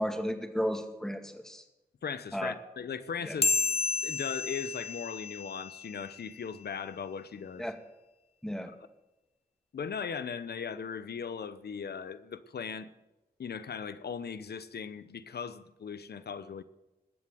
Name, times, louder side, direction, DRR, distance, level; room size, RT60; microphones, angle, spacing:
voice 1, 0.0-1.6 2.3-2.5 3.3-3.4 7.6-7.8 8.4-8.7, equal, 5° left, 2.2 m, -33 dB
voice 2, 2.0-3.5 4.0-7.7 9.7-12.9 13.4-16.6, left 6 dB, 80° left, 0.9 m, -38 dB
sound 1, 3.4-6.3, left 4 dB, 35° left, 1.0 m, -32 dB
20.5 x 7.6 x 7.6 m
cardioid pair, 45°, 16 cm